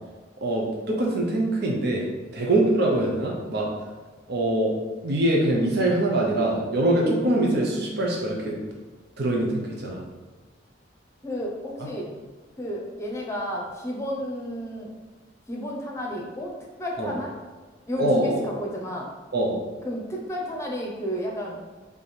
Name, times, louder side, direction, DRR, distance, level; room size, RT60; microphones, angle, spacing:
voice 1, 0.4-2.1 2.3-3.7 4.3-4.7 5.0-8.6 9.2-10.0 17.0-17.1 18.0-18.5 19.3-19.6, right 1 dB, 60° right, -1 dB, 0.8 m, -23 dB
voice 2, 11.2-12.1 12.6-14.9 15.5-16.5 16.8-17.3 17.9-19.1 19.8-21.6, equal, 15° left, -1 dB, 0.8 m, -32 dB
3.5 x 3.4 x 4.3 m, 1.3 s
head